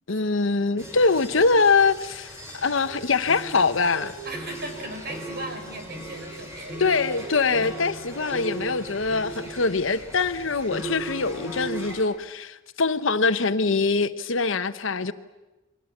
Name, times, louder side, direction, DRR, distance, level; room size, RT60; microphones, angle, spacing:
voice 1, 0.1-4.1 6.8-15.1, left 4 dB, 70° left, 1.0 m, -23 dB
sound 1, 0.8-12.0, right 2 dB, 15° right, 5.6 m, -38 dB
sound 2, 2.4-5.5 5.8-7.6, right 8 dB, 85° right, 2.8 m, -45 dB
voice 2, 4.2-7.2 7.6-7.8, right 1 dB, 50° right, 5.5 m, -38 dB
30.0 x 22.5 x 7.3 m
head